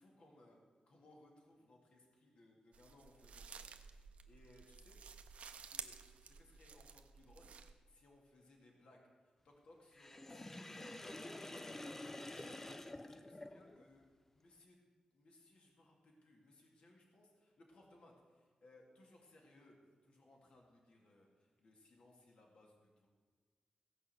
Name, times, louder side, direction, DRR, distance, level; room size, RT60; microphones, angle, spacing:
voice 1, 0.0-5.0 5.6-14.8 15.1-23.1, left 1 dB, 60° left, 0 dB, 2.2 m, -65 dB
sound 1, 2.7-7.7, right 6 dB, 80° right, 0.8 m, -53 dB
Sink (filling or washing), 9.9-13.9, left 1 dB, 15° left, 0.5 m, -49 dB
16.5 x 5.5 x 7.8 m, 1.5 s
wide cardioid pair, 180°, 2 cm